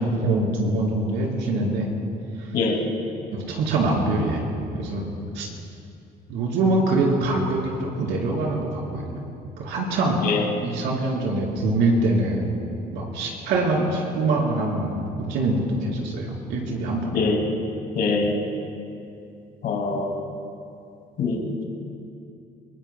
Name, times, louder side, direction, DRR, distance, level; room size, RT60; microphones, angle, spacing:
voice 1, 0.0-1.9 3.5-4.4 4.7-5.1 5.3-5.5 6.3-9.2 9.6-10.2 10.5-12.5 12.9-17.1, right 2 dB, 90° right, -2 dB, 3.9 m, -24 dB
voice 2, 17.1-17.4 17.9-18.4 19.6-20.1 21.2-21.6, left 4 dB, 65° left, 1 dB, 2.4 m, -23 dB
23.5 x 21.0 x 2.2 m, 2.6 s
cardioid pair, 110°, 17 cm